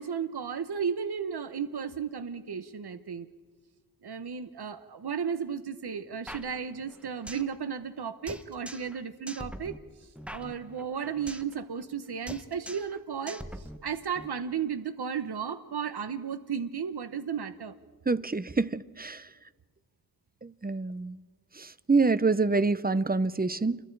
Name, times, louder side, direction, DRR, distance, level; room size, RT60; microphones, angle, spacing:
voice 1, 0.0-3.3 4.0-17.7, right 7 dB, 85° right, 0.9 m, -34 dB
sound 1, 6.3-7.5 7.8-7.9 8.3-9.0 9.3-11.5 11.8-12.0 12.3-13.0 13.3-14.3, equal, 5° right, 1.1 m, -43 dB
voice 2, 18.1-19.2 20.4-21.2 21.9-23.8, right 3 dB, 25° right, 0.7 m, -26 dB
29.0 x 22.5 x 4.7 m
wide cardioid pair, 85°, 38 cm